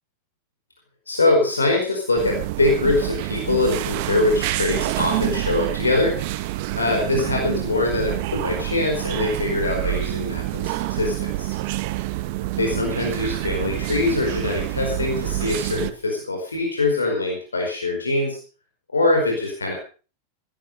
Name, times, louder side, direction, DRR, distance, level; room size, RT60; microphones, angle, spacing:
voice 1, 1.1-6.5 6.8-11.6 12.6-18.4 18.9-19.7, left 2 dB, 75° left, 1 dB, 4.9 m, -23 dB
sound 1, 2.2-15.9, right 18 dB, 50° right, 1.0 m, -27 dB
17.0 x 12.5 x 5.5 m, 0.38 s
figure-of-eight pair, 90°, 0 cm